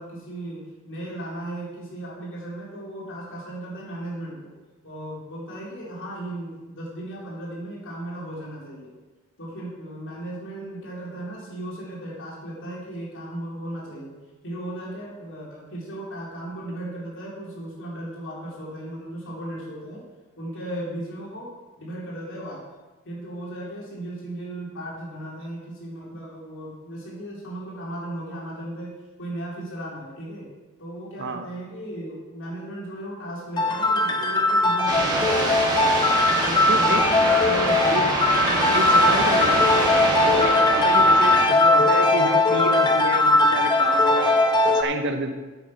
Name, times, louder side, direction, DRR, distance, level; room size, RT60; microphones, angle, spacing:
voice 1, 0.0-4.5 4.8-8.9 9.4-14.2 14.4-20.0 20.4-21.5 21.8-22.6 23.1-28.9 29.2-30.5 30.8-35.9 36.3-39.6 41.6-41.9, right 1 dB, 60° left, -4 dB, 3.4 m, -36 dB
voice 2, 31.2-31.5 36.7-37.0 37.9-38.0 38.7-39.6 40.2-44.4 44.6-45.3, right 3 dB, 55° right, 6 dB, 1.0 m, -29 dB
sound 1, 33.5-34.1 34.5-34.6 34.9-35.1 35.4-38.4 38.7-38.8 39.2-39.3, equal, ahead, 2.5 m, -37 dB
sound 2, 33.6-44.8, left 2 dB, 20° left, 0.9 m, -19 dB
sound 3, 34.9-41.5, right 2 dB, 20° right, 1.8 m, -25 dB
9.2 x 8.1 x 5.9 m, 1.2 s
head